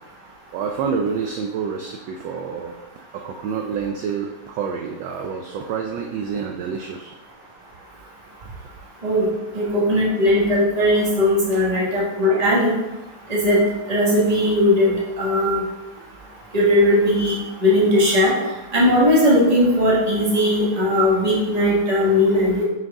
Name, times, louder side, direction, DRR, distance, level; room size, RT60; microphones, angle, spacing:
voice 1, 0.5-2.8 3.1-7.1, right 6 dB, 75° right, 3 dB, 1.1 m, -28 dB
voice 2, 9.5-12.7 13.3-13.6 13.9-15.6 16.5-18.3 18.7-22.6, left 1 dB, 20° right, -5 dB, 1.3 m, -18 dB
6.1 x 4.6 x 3.5 m, 1.0 s
omnidirectional pair, 2.3 m